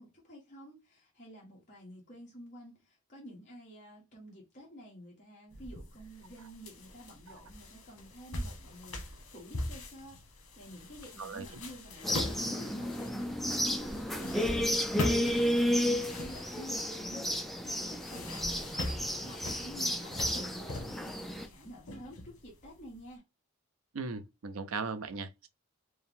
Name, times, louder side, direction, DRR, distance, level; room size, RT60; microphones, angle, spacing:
voice 1, 0.0-23.2, equal, 35° left, 1.4 m, -50 dB
sound 1, 5.5-23.0, left 1 dB, 80° left, 1.3 m, -42 dB
sound 2, 12.0-21.5, equal, ahead, 0.3 m, -32 dB
voice 2, 23.9-25.5, right 4 dB, 75° right, 0.6 m, -38 dB
4.6 x 2.2 x 3.5 m
head